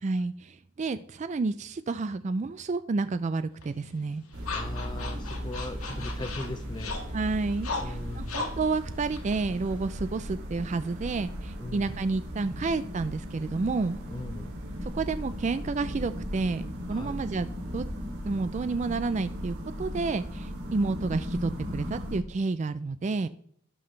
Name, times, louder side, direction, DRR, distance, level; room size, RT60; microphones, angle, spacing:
voice 1, 0.0-4.2 7.1-14.0 14.8-17.5 17.7-17.9 18.2-23.3, right 3 dB, 30° right, 12 dB, 0.3 m, -30 dB
sound 1, 3.6-10.1, left 3 dB, 80° left, 1.7 m, -39 dB
sound 2, 4.3-22.2, equal, 90° right, 2.8 m, -37 dB
voice 2, 4.5-7.0 7.8-8.5 11.6-12.0 14.1-14.6 16.9-17.2, left 2 dB, 20° left, 9 dB, 0.7 m, -39 dB
17.0 x 5.9 x 3.2 m, 0.63 s
head